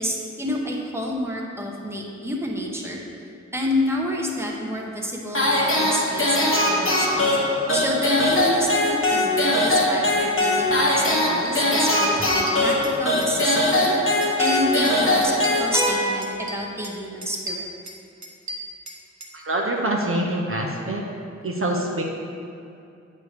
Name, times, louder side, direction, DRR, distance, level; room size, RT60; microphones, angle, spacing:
voice 1, 0.0-3.0 3.5-6.4 6.7-7.2 7.7-13.9 14.4-17.6, equal, 10° right, -1 dB, 0.9 m, -29 dB
sound 1, 5.3-16.5, left 1 dB, 45° left, 1.2 m, -21 dB
sound 2, 11.4-11.5 11.8-12.0 12.2-13.0 13.2-13.9 14.2-16.0 16.2-16.9 17.2-19.3, right 1 dB, 70° right, 1.0 m, -36 dB
voice 2, 19.3-21.1 21.4-22.0, right 1 dB, 50° right, -1 dB, 0.7 m, -25 dB
8.3 x 3.2 x 6.5 m, 2.6 s
wide cardioid pair, 85°, 29 cm